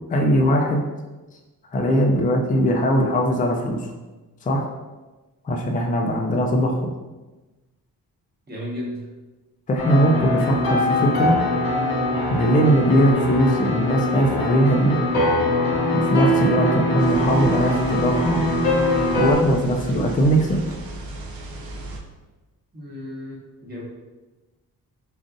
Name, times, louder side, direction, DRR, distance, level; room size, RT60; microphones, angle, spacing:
voice 1, 0.1-0.8 1.7-3.9 4.4-4.7 5.4-6.9 9.7-11.4 12.3-15.0 15.9-18.4 19.2-20.6, equal, 25° left, 1 dB, 0.4 m, -20 dB
voice 2, 8.5-9.1 22.7-23.8, left 1 dB, 25° right, -5 dB, 1.0 m, -34 dB
sound 1, 9.8-19.3, left 1 dB, 80° left, 0.8 m, -22 dB
sound 2, 17.0-22.0, right 2 dB, 85° right, 0.5 m, -36 dB
3.8 x 2.4 x 2.5 m, 1.2 s
cardioid pair, 90°, 35 cm